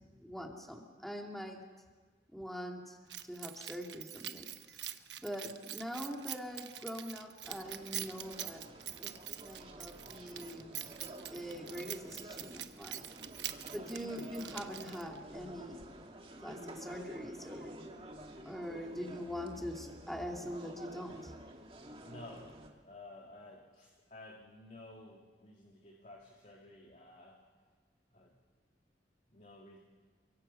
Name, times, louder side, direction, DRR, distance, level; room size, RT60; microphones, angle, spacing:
voice 1, 0.2-1.6 2.3-8.7 9.0-10.7 11.3-13.1 13.4-15.8 16.4-17.7 18.4-21.3, equal, ahead, 1 dB, 2.5 m, -43 dB
Keys jangling, 3.1-15.2, right 12 dB, 80° right, 1.0 m, -45 dB
sound 1, 7.4-22.7, right 1 dB, 30° right, 2.3 m, -50 dB
voice 2, 22.0-22.5 22.8-27.4 28.1-28.3 29.3-29.8, left 2 dB, 45° left, -1 dB, 2.5 m, -53 dB
29.0 x 24.0 x 5.7 m, 1.5 s
head